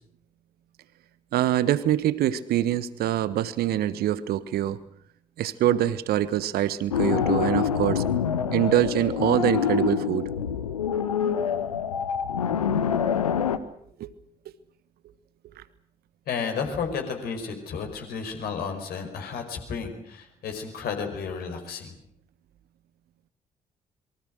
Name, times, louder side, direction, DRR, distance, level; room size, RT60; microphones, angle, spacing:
voice 1, 1.3-4.8 5.4-8.1 8.5-10.3 14.0-14.1, right 12 dB, 60° right, 16 dB, 1.3 m, -24 dB
sound 1, 6.9-13.6, left 7 dB, 80° left, 1.0 m, -26 dB
voice 2, 16.3-21.9, left 6 dB, 55° left, 5 dB, 5.2 m, -32 dB
27.0 x 23.5 x 6.5 m, 0.69 s
figure-of-eight pair, 40°, 18 cm